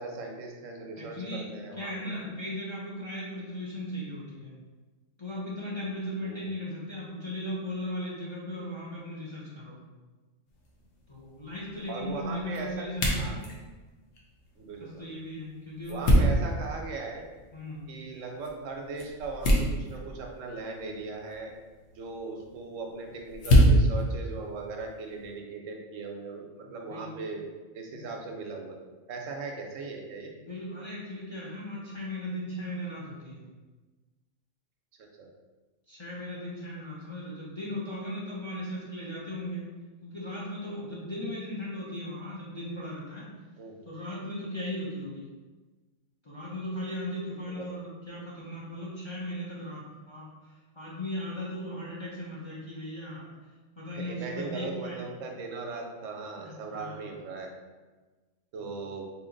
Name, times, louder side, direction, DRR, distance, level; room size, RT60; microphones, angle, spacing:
voice 1, 0.0-2.1 6.2-6.5 11.9-12.7 13.1-13.4 14.6-15.1 15.9-17.2 17.9-21.5 21.9-27.5 27.7-28.8 29.1-30.3 35.0-35.3 43.6-43.8 47.4-47.7 53.9-57.5 58.5-59.1, right 3 dB, 90° right, 2 dB, 1.0 m, -39 dB
voice 2, 1.0-1.5 1.8-4.5 5.2-9.8 11.1-13.4 14.8-16.4 17.5-17.9 26.6-27.1 27.9-28.0 30.3-33.4 35.9-39.7 40.0-43.3 43.8-45.3 46.2-53.3 53.8-55.0 56.4-57.0 58.6-58.8, left 1 dB, 30° left, -7 dB, 0.6 m, -37 dB
sound 1, 10.5-25.3, equal, 65° left, 1.0 m, -29 dB
2.8 x 2.8 x 3.8 m, 1.3 s
omnidirectional pair, 1.3 m